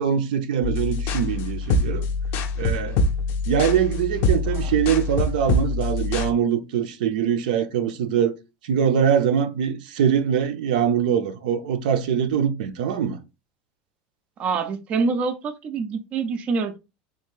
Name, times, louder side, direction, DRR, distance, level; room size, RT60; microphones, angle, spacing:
voice 1, 0.0-2.1 2.6-3.0 3.4-8.3 8.6-13.2, right 8 dB, 90° right, 0.6 m, -23 dB
sound 1, 0.6-6.3, left 3 dB, 45° left, 0.4 m, -24 dB
voice 2, 14.4-16.8, right 4 dB, 30° right, 0.4 m, -25 dB
3.5 x 2.5 x 3.1 m
supercardioid pair, 160°, 4 cm